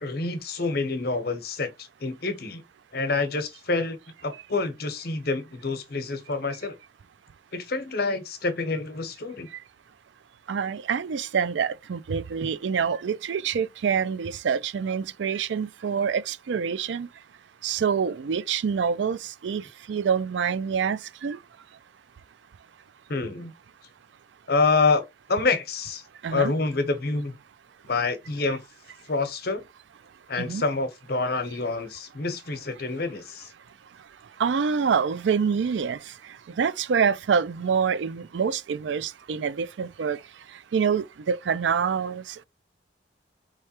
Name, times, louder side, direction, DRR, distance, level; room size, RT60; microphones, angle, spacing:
voice 1, 0.0-2.6 2.9-6.8 7.5-9.5 23.1-23.5 24.5-25.0 25.3-26.0 26.3-27.4 27.9-28.6 29.1-29.6 30.3-33.5, left 3 dB, 55° left, 0.9 m, -27 dB
voice 2, 10.5-17.1 17.6-19.6 19.9-21.4 26.2-26.5 30.4-30.6 34.4-36.0 36.6-40.2 40.7-42.4, right 6 dB, 75° right, 0.4 m, -26 dB
4.6 x 3.3 x 2.9 m
head